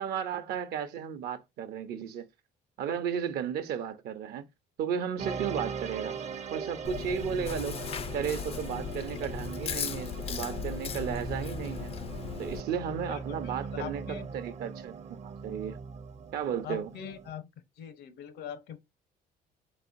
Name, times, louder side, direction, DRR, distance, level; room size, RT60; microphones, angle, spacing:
voice 1, 0.0-2.3 2.8-4.4 4.8-6.2 6.5-7.8 8.1-11.9 12.4-15.0 15.2-15.8 16.3-16.9, right 8 dB, 70° right, 0.7 m, -34 dB
sound 1, 5.2-17.3, right 5 dB, 40° right, 0.6 m, -40 dB
Chewing mastication, 6.8-12.6, left 7 dB, 35° left, 0.4 m, -37 dB
voice 2, 13.1-14.3 16.6-17.5 17.8-18.8, left 9 dB, 75° left, 0.8 m, -42 dB
4.1 x 3.9 x 2.5 m
cardioid pair, 110°, 17 cm